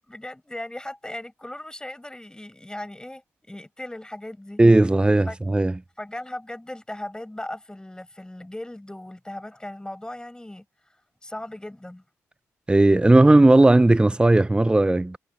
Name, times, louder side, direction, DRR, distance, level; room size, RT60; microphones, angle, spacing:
voice 1, 0.0-3.2 3.5-4.6 5.3-5.4 6.0-10.6 11.2-12.0, left 1 dB, 10° left, 5.9 m, -37 dB
voice 2, 4.6-5.7 12.7-15.2, right 2 dB, 15° right, 0.6 m, -16 dB
supercardioid pair, 50°, 7 cm